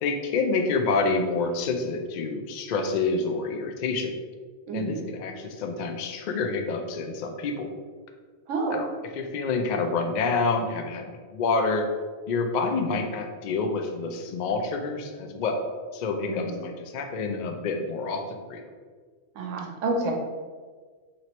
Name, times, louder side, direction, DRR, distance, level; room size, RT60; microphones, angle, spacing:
voice 1, 0.0-4.1 4.7-7.7 8.7-8.9 9.1-11.9 12.3-15.6 15.9-18.7, left 4 dB, 65° left, 4 dB, 0.4 m, -28 dB
voice 2, 4.7-5.0 8.5-8.8 16.2-16.7 19.3-20.1, right 3 dB, 85° right, 1 dB, 1.1 m, -29 dB
3.0 x 3.0 x 4.3 m, 1.5 s
omnidirectional pair, 1.3 m